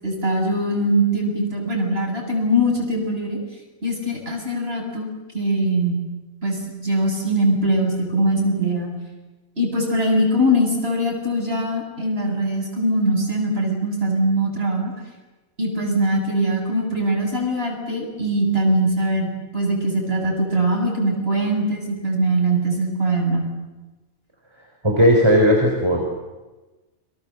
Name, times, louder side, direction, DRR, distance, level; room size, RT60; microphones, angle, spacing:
voice 1, 0.0-3.4 3.8-5.1 5.3-6.0 6.4-8.9 9.6-14.9 15.6-23.5, right 1 dB, 45° right, 0 dB, 7.8 m, -22 dB
voice 2, 24.8-26.1, equal, 20° right, 0 dB, 4.4 m, -16 dB
30.0 x 24.5 x 7.8 m, 1.2 s
omnidirectional pair, 1.4 m